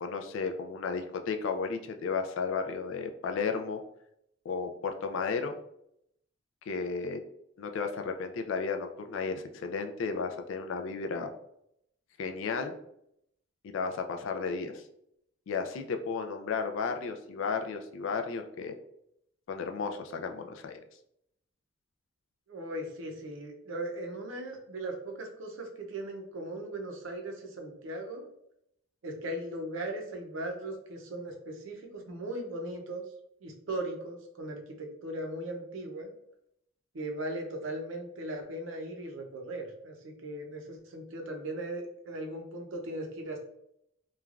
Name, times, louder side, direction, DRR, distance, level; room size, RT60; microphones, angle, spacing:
voice 1, 0.0-3.8 4.5-5.5 6.7-7.2 7.6-11.3 12.2-12.7 13.6-14.8 15.5-18.7 19.5-20.8, left 5 dB, 65° left, 6 dB, 0.3 m, -33 dB
voice 2, 22.5-28.3 29.0-33.0 33.4-36.1 36.9-43.4, right 1 dB, 65° right, 2 dB, 0.6 m, -38 dB
3.1 x 2.2 x 2.4 m, 0.76 s
head